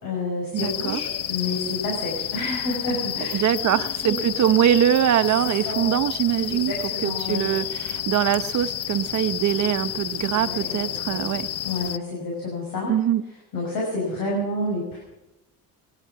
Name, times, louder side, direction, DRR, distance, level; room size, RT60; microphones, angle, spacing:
voice 1, 0.0-4.4 5.4-6.0 6.5-7.6 10.3-11.4 11.6-12.9 13.5-15.0, left 2 dB, 70° left, -2 dB, 5.7 m, -30 dB
voice 2, 0.5-1.0 3.3-6.7 7.0-11.5 12.9-13.2, right 10 dB, 55° right, 10 dB, 0.9 m, -23 dB
sound 1, 0.6-12.0, left 11 dB, 45° left, 0.5 m, -30 dB
20.5 x 11.5 x 5.9 m, 0.97 s
cardioid pair, 120°, 35 cm